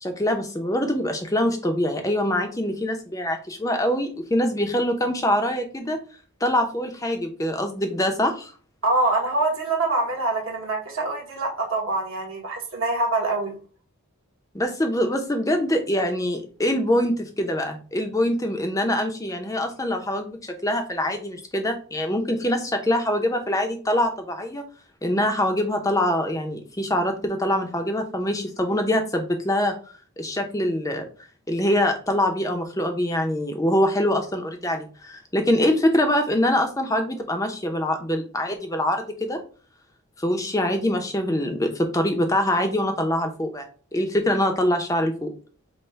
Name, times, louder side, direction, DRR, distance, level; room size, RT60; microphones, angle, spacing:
voice 1, 0.0-6.0 6.4-8.5 14.5-24.6 25.0-29.7 30.2-31.0 31.5-39.4 40.2-45.3, left 1 dB, 15° left, 5 dB, 0.6 m, -24 dB
voice 2, 8.8-13.5, right 2 dB, 65° right, -1 dB, 1.3 m, -25 dB
5.4 x 2.2 x 4.4 m, 0.39 s
head